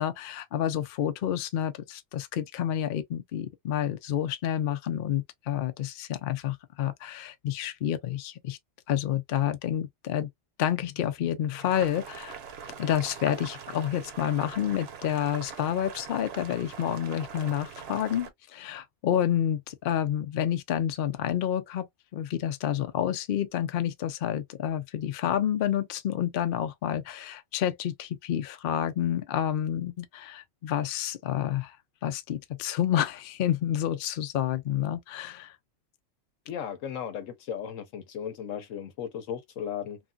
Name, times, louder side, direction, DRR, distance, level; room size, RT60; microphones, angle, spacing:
voice 1, 0.0-8.6 8.9-10.3 10.6-12.4 12.8-21.9 22.1-31.8 32.0-35.5, left 10 dB, 60° left, 0.6 m, -29 dB
Boiling, 11.5-18.3, right 6 dB, 60° right, 0.9 m, -43 dB
voice 2, 36.5-40.0, left 8 dB, 80° left, 1.1 m, -36 dB
3.1 x 2.6 x 2.2 m
omnidirectional pair, 1.3 m